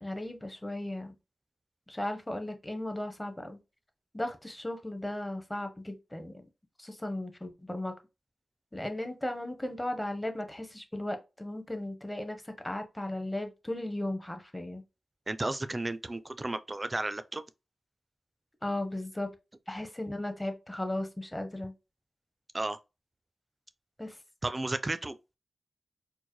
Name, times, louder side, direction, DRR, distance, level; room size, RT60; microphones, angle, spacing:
voice 1, 0.0-1.1 1.9-3.6 4.1-6.4 6.8-7.9 8.7-14.8 18.6-19.3 19.7-21.7 24.0-24.1, left 1 dB, 15° left, 0.9 m, -36 dB
voice 2, 15.3-17.4 22.5-22.8 24.4-25.2, right 2 dB, 30° right, 0.4 m, -33 dB
4.4 x 2.1 x 3.0 m
cardioid pair, 60°, 0 cm